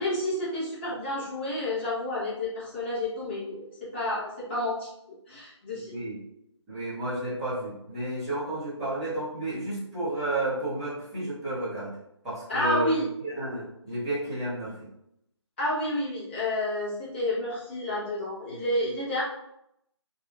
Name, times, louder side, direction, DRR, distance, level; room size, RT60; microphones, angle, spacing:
voice 1, 0.0-4.9 5.3-6.0 12.5-13.0 15.6-19.2, left 1 dB, 25° left, -8 dB, 0.9 m, -30 dB
voice 2, 5.7-6.2 6.7-11.9 12.2-14.9, right 1 dB, 5° right, -17 dB, 0.9 m, -32 dB
2.7 x 2.4 x 2.2 m, 0.78 s
figure-of-eight pair, 155°, 15 cm